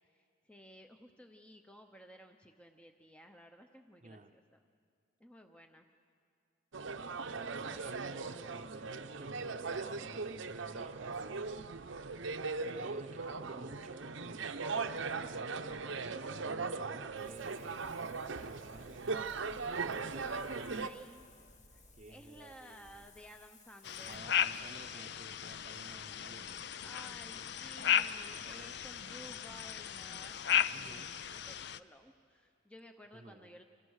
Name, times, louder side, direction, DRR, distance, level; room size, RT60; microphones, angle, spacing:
voice 1, 0.1-4.6 5.2-5.9 7.7-8.1 20.2-21.3 21.7-24.3 26.8-30.7 31.3-33.6, equal, 5° left, 5 dB, 0.8 m, -55 dB
voice 2, 4.0-4.3 7.3-7.8 8.4-11.8 12.7-20.2 21.9-23.0 24.0-26.7 28.3-28.7 30.7-31.2 33.1-33.6, right 2 dB, 35° right, 6 dB, 0.8 m, -54 dB
Cambridge pub beergarden atmos, 6.7-20.9, right 4 dB, 75° right, 0.8 m, -39 dB
Wind, 17.2-24.2, left 2 dB, 35° left, 2.0 m, -60 dB
sound 1, 23.8-31.8, left 9 dB, 55° left, 0.6 m, -36 dB
29.5 x 26.0 x 6.5 m, 2.4 s
head